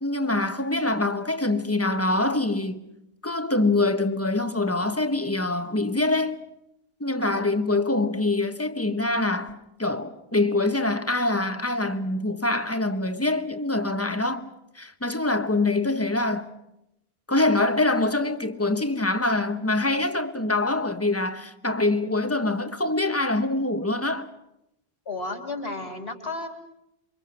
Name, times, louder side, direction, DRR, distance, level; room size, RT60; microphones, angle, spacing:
voice 1, 0.0-2.8 3.2-6.4 7.0-14.5 14.7-16.5 17.3-24.3, left 2 dB, 15° left, 1.1 m, -24 dB
voice 2, 25.1-26.5, left 2 dB, 75° left, 3.8 m, -33 dB
28.5 x 24.0 x 6.0 m
omnidirectional pair, 1.1 m